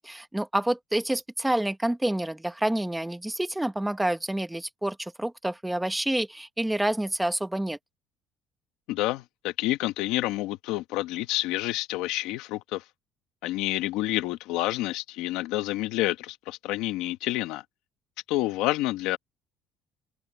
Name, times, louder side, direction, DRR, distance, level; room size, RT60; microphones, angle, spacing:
voice 1, 0.0-7.8, right 1 dB, 5° right, 1.3 m, -28 dB
voice 2, 8.9-12.8 13.4-17.6 18.3-19.2, left 17 dB, 85° left, 1.3 m, -28 dB
open air
cardioid pair, 125°, 0 cm